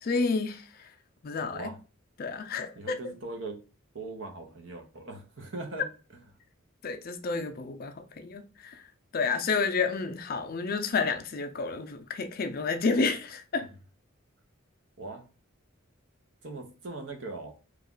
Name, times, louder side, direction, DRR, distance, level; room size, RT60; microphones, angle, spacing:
voice 1, 0.0-0.9 1.2-1.7 2.2-2.9 6.8-8.8 9.1-13.7, left 4 dB, 45° left, 0.4 m, -30 dB
voice 2, 1.5-1.8 2.7-3.6 3.9-5.9 13.6-13.7 15.0-15.3 16.4-17.6, right 2 dB, 65° right, 0.8 m, -40 dB
3.1 x 2.4 x 3.7 m
head